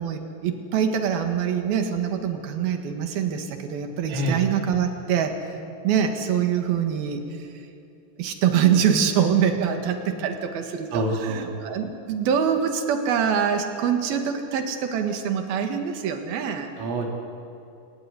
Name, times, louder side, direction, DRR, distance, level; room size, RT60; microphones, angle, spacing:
voice 1, 0.0-5.4 5.8-7.5 8.2-16.7, right 8 dB, 60° right, 5 dB, 3.1 m, -24 dB
voice 2, 10.9-11.5 16.8-17.1, right 1 dB, 80° right, 1 dB, 5.5 m, -26 dB
28.0 x 17.5 x 9.7 m, 2.6 s
omnidirectional pair, 5.8 m